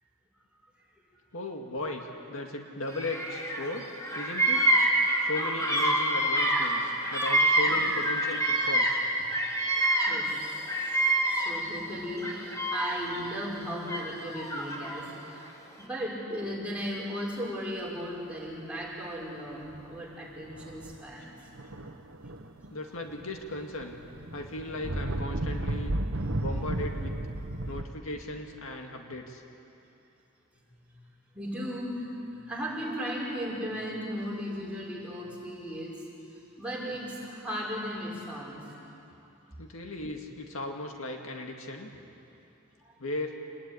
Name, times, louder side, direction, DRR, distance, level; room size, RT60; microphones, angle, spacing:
voice 1, 1.3-4.7 5.2-6.8 7.1-9.0 21.2-21.3 22.7-24.0 24.3-25.9 26.4-27.1 27.7-29.4 39.6-41.9 43.0-43.3, left 1 dB, 70° left, 2 dB, 2.2 m, -37 dB
Bird vocalization bird call bird song, 2.9-3.7 3.9-9.0 9.3-11.7 12.2-13.2 13.9-15.0, right 1 dB, 15° left, 3.4 m, -26 dB
voice 2, 11.4-15.0 15.3-21.2 31.3-32.0 32.5-36.0 36.6-38.6, equal, 5° right, -5 dB, 6.0 m, -36 dB
sound 1, 19.6-19.9 20.5-21.0 21.5-22.7 23.1-27.8, right 1 dB, 65° right, 1.2 m, -33 dB
27.0 x 20.5 x 9.9 m, 2.9 s
head